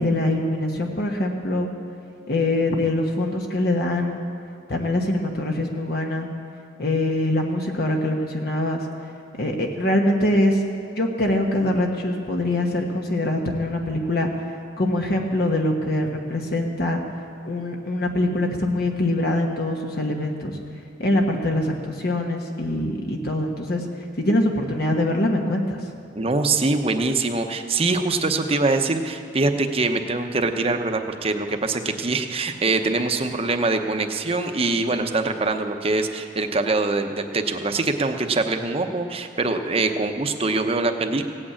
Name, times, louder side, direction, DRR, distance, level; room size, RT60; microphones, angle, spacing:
voice 1, 0.0-1.7 2.3-4.2 4.7-6.3 6.8-8.8 9.4-10.6 11.0-14.3 14.8-17.0 17.4-20.6 21.0-23.9 24.2-25.8, left 1 dB, 60° left, 1 dB, 1.3 m, -23 dB
voice 2, 26.1-41.3, right 3 dB, 30° right, 6 dB, 0.9 m, -23 dB
17.0 x 8.8 x 8.5 m, 2.5 s
head